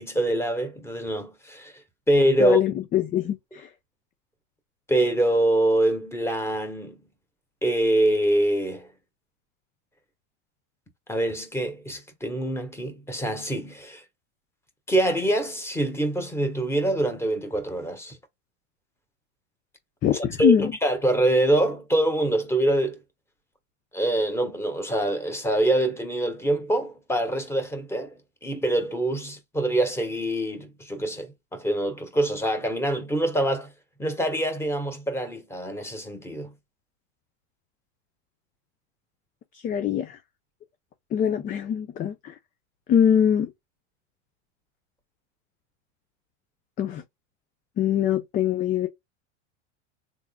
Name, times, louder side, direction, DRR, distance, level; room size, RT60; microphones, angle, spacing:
voice 1, 0.0-1.7 2.1-2.6 4.9-7.0 7.6-8.9 11.1-14.0 14.9-18.2 20.4-23.0 23.9-33.7 34.0-36.5, right 1 dB, 5° left, 1.3 m, -25 dB
voice 2, 2.4-3.7 20.0-20.7 39.5-40.2 41.1-42.3 42.9-43.5 46.8-47.0 47.8-48.9, left 9 dB, 25° left, 0.4 m, -23 dB
3.6 x 3.6 x 2.2 m
supercardioid pair, 120°, 37 cm